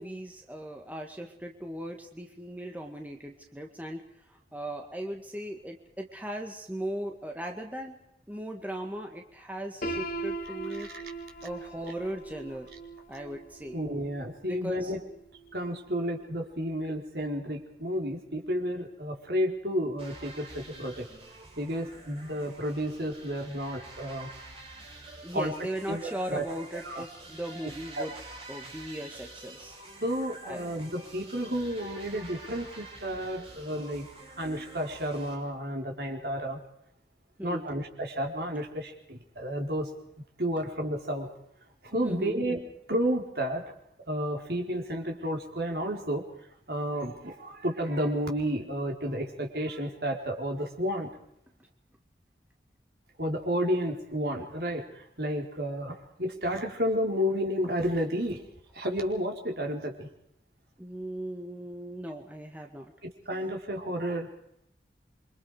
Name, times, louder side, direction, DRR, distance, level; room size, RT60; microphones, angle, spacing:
voice 1, 0.0-4.0 4.3-8.0 8.3-10.9 11.4-12.7 13.1-13.8 14.5-14.9 25.2-28.1 28.5-29.8 30.4-30.7 37.4-37.7 42.0-42.4 60.8-62.9, equal, 10° right, 2 dB, 1.9 m, -38 dB
Piano, 9.8-15.7, right 2 dB, 50° left, 3.1 m, -40 dB
voice 2, 13.7-15.0 15.5-21.1 21.6-24.3 25.3-25.5 25.9-26.4 26.7-27.0 28.0-28.1 30.0-34.1 34.4-36.6 37.4-39.9 40.4-41.3 41.8-42.6 42.9-43.6 44.1-46.3 46.7-51.1 53.2-58.4 58.7-60.1 63.3-64.3, equal, 65° right, 2 dB, 4.3 m, -31 dB
sound 1, 20.0-35.3, right 2 dB, 35° right, 6.8 m, -48 dB
28.0 x 24.5 x 5.0 m, 0.74 s
head